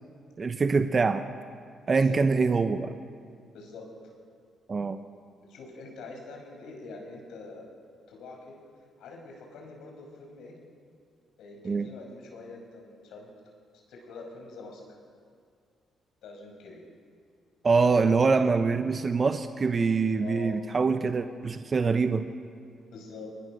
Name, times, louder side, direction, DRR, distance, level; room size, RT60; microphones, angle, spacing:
voice 1, 0.4-1.2 1.9-2.9 4.7-5.0 11.6-11.9 17.6-22.3, right 4 dB, 35° right, 8 dB, 0.9 m, -24 dB
voice 2, 3.5-4.1 5.5-7.7 8.1-8.6 9.0-10.6 11.4-13.3 13.9-15.0 16.2-16.8 20.2-20.5 22.9-23.3, left 3 dB, 80° left, 1 dB, 5.4 m, -45 dB
22.5 x 20.0 x 6.5 m, 2.2 s
cardioid pair, 90°, 0 cm